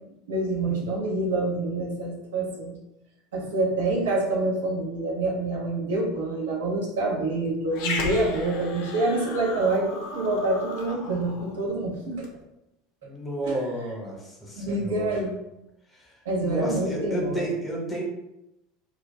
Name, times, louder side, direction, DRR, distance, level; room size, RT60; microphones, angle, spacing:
voice 1, 0.3-2.8 3.3-12.3 13.4-13.6 14.5-15.4 16.2-17.5, right 2 dB, 70° right, -3 dB, 0.7 m, -27 dB
Growling, 7.7-12.4, left 4 dB, 55° left, 0.4 m, -35 dB
voice 2, 13.0-15.2 15.9-16.1 16.4-18.0, right 1 dB, 15° left, -2 dB, 0.9 m, -31 dB
2.3 x 2.2 x 3.2 m, 0.89 s
figure-of-eight pair, 75°, 0 cm